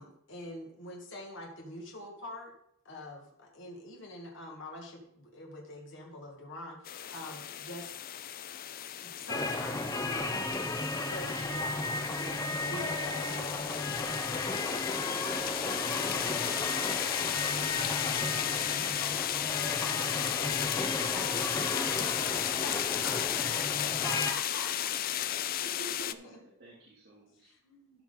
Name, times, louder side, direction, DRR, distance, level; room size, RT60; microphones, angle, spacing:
voice 1, 0.0-2.5 2.9-8.0 8.8-10.5 10.9-15.7 16.0-16.9 17.5-17.9 19.7-20.1 22.6-25.4 25.8-26.4 27.4-28.0, left 1 dB, 60° left, 0 dB, 1.8 m, -45 dB
sound 1, 6.9-26.1, left 11 dB, 45° left, 0.4 m, -34 dB
sound 2, 9.3-24.3, left 2 dB, 15° left, 0.8 m, -34 dB
voice 2, 19.6-20.0 20.2-22.0, equal, ahead, -7 dB, 3.1 m, -47 dB
voice 3, 25.3-25.8 26.0-27.5, right 1 dB, 50° right, -7 dB, 2.7 m, -57 dB
13.0 x 6.1 x 3.9 m, 0.69 s
head